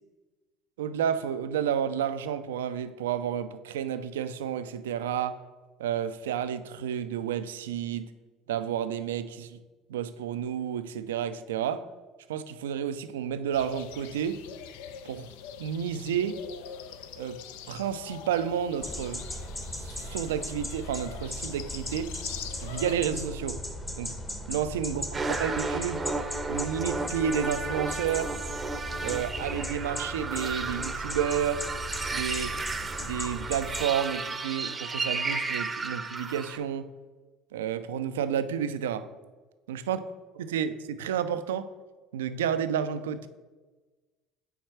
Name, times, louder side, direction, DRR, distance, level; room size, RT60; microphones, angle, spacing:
voice 1, 0.8-5.4 5.8-8.1 8.5-9.6 9.9-11.9 12.3-14.4 15.0-15.3 15.6-16.4 17.2-17.4 17.7-19.2 19.8-22.1 22.6-23.6 24.0-24.1 24.5-25.0 25.4-26.0 26.5-28.4 29.0-31.7 32.1-32.6 33.0-36.9 37.5-39.1 39.7-40.0 40.5-41.7 42.1-43.3, right 8 dB, 90° right, 0.3 m, -31 dB
sound 1, 13.5-23.0, left 9 dB, 80° left, 0.3 m, -44 dB
sound 2, 18.8-33.9, equal, 15° left, 0.9 m, -38 dB
sound 3, 25.1-36.6, right 3 dB, 25° right, 0.6 m, -33 dB
4.6 x 4.3 x 5.8 m
hypercardioid pair, 75°, 0 cm